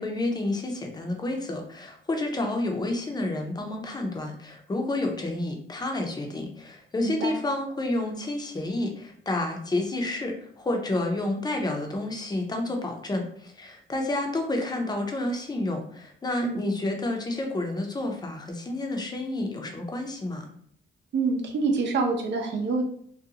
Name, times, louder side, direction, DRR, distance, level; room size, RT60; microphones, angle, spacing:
voice 1, 0.0-20.5, left 2 dB, 20° left, 2 dB, 0.6 m, -30 dB
voice 2, 7.0-7.4 16.4-16.6 21.1-22.8, right 4 dB, 65° right, 2 dB, 0.7 m, -26 dB
2.5 x 2.2 x 2.8 m, 0.63 s
cardioid pair, 90°, 20 cm